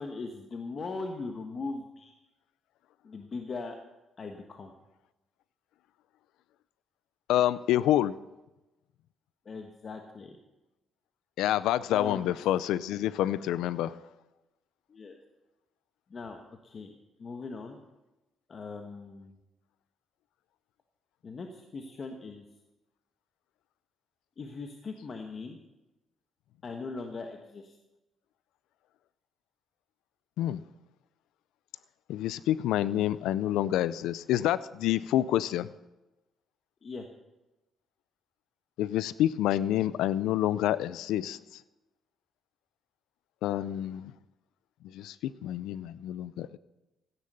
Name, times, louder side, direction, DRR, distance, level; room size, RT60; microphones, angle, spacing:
voice 1, 0.0-2.1 3.0-3.7 4.2-4.7 9.4-10.4 11.9-12.3 14.9-15.2 16.1-16.9 17.2-17.8 18.5-19.3 21.2-22.4 24.4-25.6 26.6-27.8 36.8-37.1, left 3 dB, 45° left, 4 dB, 1.4 m, -39 dB
voice 2, 7.3-8.1 11.4-13.9 30.4-30.6 32.1-35.7 38.8-41.4 43.4-44.1 44.9-46.6, left 12 dB, 90° left, 18 dB, 0.4 m, -28 dB
15.0 x 9.9 x 6.8 m, 1.0 s
cardioid pair, 90°, 0 cm